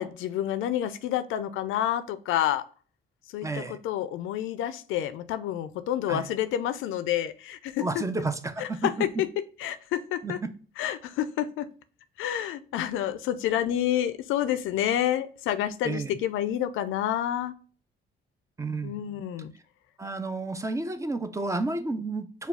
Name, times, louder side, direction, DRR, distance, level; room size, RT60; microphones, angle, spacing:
voice 1, 0.0-2.6 3.3-8.0 8.6-9.1 9.6-10.4 10.8-11.7 12.2-17.5 18.8-19.5, left 11 dB, 85° left, 13 dB, 0.4 m, -29 dB
voice 2, 3.4-3.8 6.1-6.3 7.8-8.9 10.2-10.5 15.8-16.2 18.6-19.0 20.0-22.5, right 3 dB, 15° right, 9 dB, 0.4 m, -31 dB
4.6 x 2.3 x 3.4 m, 0.41 s
cardioid pair, 90°, 20 cm